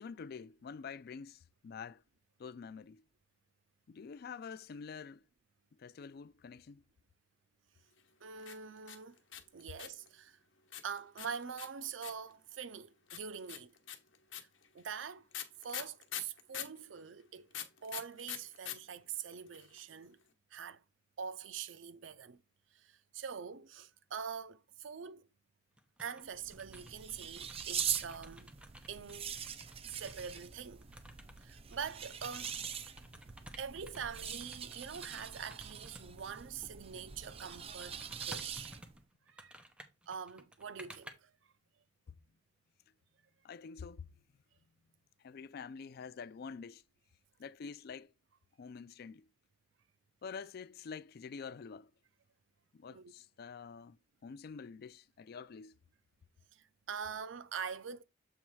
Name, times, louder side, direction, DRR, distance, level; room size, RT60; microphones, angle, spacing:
voice 1, 0.0-2.0 2.4-3.0 3.9-5.2 5.8-6.8 43.4-44.1 45.2-46.8 47.4-48.1 48.6-49.3 50.2-51.9 52.7-54.0 54.2-55.8, left 5 dB, 55° left, 0.4 m, -47 dB
voice 2, 8.2-9.2 9.5-10.4 10.8-13.7 14.4-14.5 14.7-15.3 15.6-17.5 17.8-20.2 20.5-20.8 21.2-22.4 22.7-25.3 26.0-28.5 28.9-29.3 29.9-30.9 31.4-32.6 33.6-38.7 39.3-39.6 40.1-41.3 52.9-53.1 56.5-58.0, right 7 dB, 80° right, 0.5 m, -44 dB
sound 1, 8.4-10.1 10.7-12.3 13.1-16.8 17.5-18.8 19.0-19.1 19.3-19.8, left 10 dB, 80° left, 0.9 m, -43 dB
sound 2, 25.8-26.2 26.5-30.4 30.8-36.3 37.1-37.3 37.8-41.1, right 1 dB, 5° right, 0.8 m, -54 dB
sound 3, 26.3-39.0, right 8 dB, 30° right, 0.5 m, -43 dB
7.4 x 3.1 x 4.6 m
head